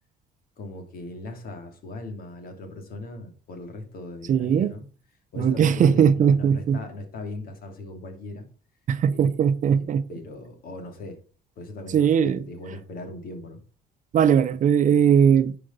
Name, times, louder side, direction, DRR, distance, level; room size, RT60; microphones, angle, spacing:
voice 1, 0.6-4.8 5.3-8.5 9.1-9.3 9.8-11.2 11.6-13.6, left 2 dB, 60° left, 2.5 m, -38 dB
voice 2, 4.3-4.7 5.4-6.8 8.9-10.0 11.9-12.4 14.1-15.6, right 8 dB, 50° right, 0.7 m, -19 dB
10.0 x 5.1 x 5.4 m
cardioid pair, 110°, 17 cm